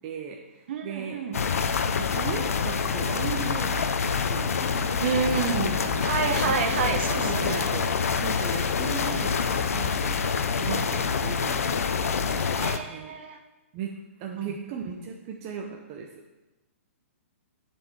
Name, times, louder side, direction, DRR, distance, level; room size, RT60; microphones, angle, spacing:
voice 1, 0.0-1.2 1.8-5.1 5.7-6.1 6.4-11.9 12.9-13.2 13.7-16.2, right 6 dB, 30° right, 0 dB, 0.7 m, -37 dB
voice 2, 0.7-1.4 5.0-7.7 12.6-13.4 14.4-14.5, right 6 dB, 50° right, 5 dB, 1.1 m, -29 dB
sound 1, 1.3-12.8, left 6 dB, 80° left, 0.6 m, -26 dB
7.6 x 4.5 x 7.1 m, 1.1 s
hypercardioid pair, 155°, 8 cm